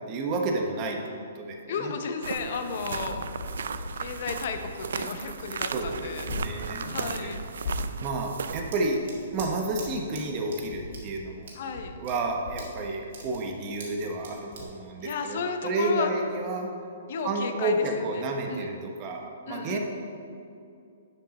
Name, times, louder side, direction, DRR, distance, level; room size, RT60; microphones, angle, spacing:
voice 1, 0.1-1.9 2.8-3.2 5.7-7.3 8.0-9.0 9.3-11.5 11.9-16.7 17.2-19.8, right 2 dB, 30° right, 2 dB, 0.9 m, -31 dB
voice 2, 1.7-3.2 4.0-6.3 6.8-7.4 11.6-12.0 15.0-16.1 17.1-18.2 18.5-18.7 19.5-19.8, left 5 dB, 55° left, 6 dB, 0.7 m, -33 dB
sound 1, 2.2-8.7, right 6 dB, 80° right, 0.4 m, -36 dB
sound 2, 2.9-14.6, left 2 dB, 80° left, 1.9 m, -41 dB
Scissors, 8.7-15.9, right 3 dB, 60° right, 2.1 m, -48 dB
10.5 x 5.3 x 4.2 m, 2.5 s
hypercardioid pair, 155°, 0 cm